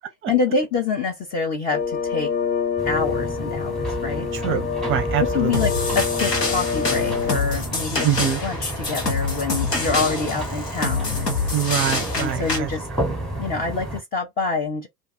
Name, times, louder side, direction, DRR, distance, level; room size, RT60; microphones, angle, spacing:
voice 1, 0.3-2.3 2.8-4.6 5.2-11.3 12.1-12.9 13.4-14.9, left 4 dB, 20° left, 0.4 m, -26 dB
sound 1, 1.7-7.4, left 6 dB, 65° left, 0.8 m, -26 dB
sound 2, 2.8-14.0, right 1 dB, ahead, 1.0 m, -31 dB
voice 2, 4.3-5.5 8.0-8.4 11.5-12.7, right 9 dB, 25° right, 0.5 m, -24 dB
sound 3, 5.5-12.6, left 3 dB, 90° left, 1.0 m, -26 dB
2.5 x 2.2 x 3.4 m
figure-of-eight pair, 75°, 47 cm